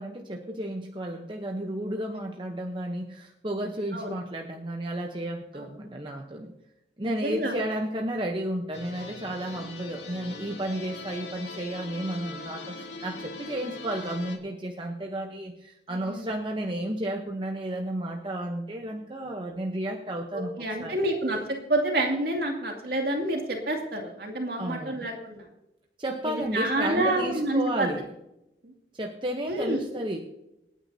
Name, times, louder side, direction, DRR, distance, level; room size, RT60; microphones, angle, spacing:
voice 1, 0.0-6.5 7.0-21.0 24.6-25.0 26.0-28.1 28.9-30.2, right 1 dB, 25° right, 1 dB, 0.9 m, -32 dB
voice 2, 7.0-7.5 15.9-16.3 20.3-21.4 21.7-25.4 26.2-27.9 28.6-28.7 29.5-29.8, right 1 dB, 55° right, 1 dB, 2.5 m, -28 dB
sound 1, 8.7-14.4, left 3 dB, 85° left, 2.2 m, -41 dB
26.5 x 9.2 x 2.8 m, 0.89 s
head